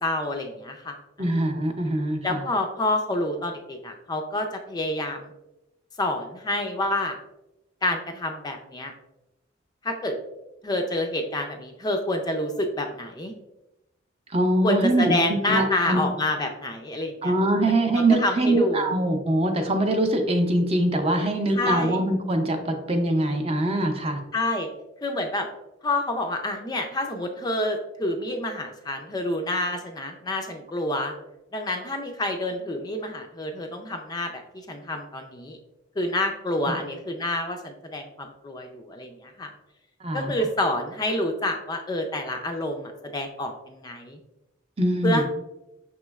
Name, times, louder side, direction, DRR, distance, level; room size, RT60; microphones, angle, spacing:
voice 1, 0.0-1.3 2.2-5.3 6.0-7.2 7.8-8.9 9.8-10.2 10.6-13.3 14.6-17.3 17.9-18.9 21.5-22.0 24.3-24.7 25.0-25.5 25.8-31.1 31.5-35.6 36.0-39.5 40.1-44.2 45.0-45.2, left 1 dB, 20° left, 4 dB, 0.3 m, -28 dB
voice 2, 1.2-2.4 14.3-16.0 17.2-24.2 36.7-36.8 40.0-40.3 44.8-45.2, right 1 dB, 30° right, 5 dB, 0.5 m, -23 dB
5.9 x 3.0 x 2.3 m, 0.94 s
head